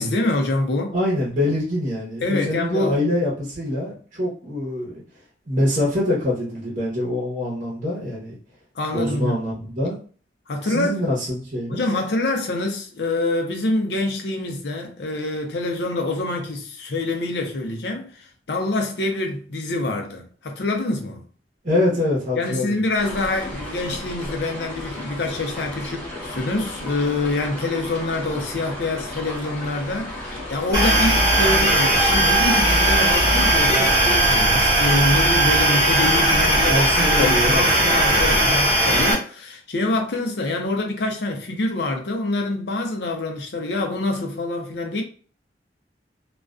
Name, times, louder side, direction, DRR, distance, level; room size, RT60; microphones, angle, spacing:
voice 1, 0.0-0.9 2.2-3.0 8.8-9.4 10.5-11.1 11.7-21.2 22.4-45.0, left 2 dB, 65° left, 0.5 m, -25 dB
voice 2, 0.9-5.0 5.5-8.3 8.9-9.9 10.6-11.8 21.6-22.8 36.6-37.6, left 1 dB, 45° right, 0.8 m, -24 dB
sound 1, 23.0-34.4, left 1 dB, 10° left, 0.8 m, -34 dB
sound 2, 30.7-39.1, right 1 dB, 20° right, 1.0 m, -18 dB
2.4 x 2.1 x 2.4 m
head